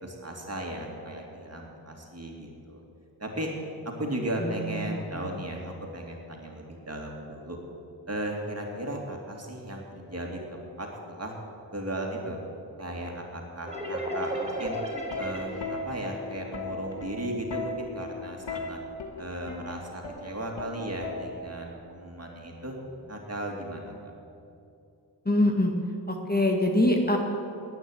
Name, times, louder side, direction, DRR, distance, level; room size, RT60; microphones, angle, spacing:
voice 1, 0.0-2.8 3.2-3.5 3.8-7.6 8.1-11.3 11.7-12.4 12.8-14.8 15.2-18.8 19.2-22.8 23.1-24.1, right 1 dB, 35° right, 0 dB, 2.7 m, -36 dB
voice 2, 4.4-5.3 25.2-25.7 26.1-27.2, left 1 dB, 20° left, 2 dB, 1.7 m, -24 dB
sound 1, 13.7-17.2, right 1 dB, 15° right, 3.7 m, -35 dB
Plucked string instrument, 14.6-21.7 22.8-23.1, left 3 dB, 80° left, 1.6 m, -37 dB
10.5 x 9.2 x 9.3 m, 2.7 s
cardioid pair, 45°, 43 cm